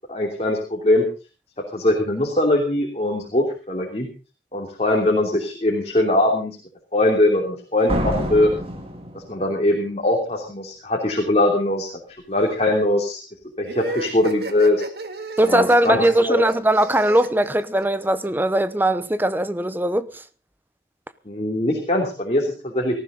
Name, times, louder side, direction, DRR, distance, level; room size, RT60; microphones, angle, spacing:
voice 1, 0.1-1.0 1.7-4.1 4.5-6.5 6.9-8.5 9.3-11.9 12.3-13.2 13.6-14.8 15.4-16.3 21.3-23.0, left 1 dB, 35° left, 3.1 m, -21 dB
Slam, 7.9-9.8, equal, 35° right, 2.5 m, -27 dB
sound 1, 13.6-18.3, right 3 dB, 65° right, 1.8 m, -33 dB
voice 2, 15.4-20.2, right 1 dB, 10° right, 0.8 m, -20 dB
19.0 x 14.5 x 3.9 m
head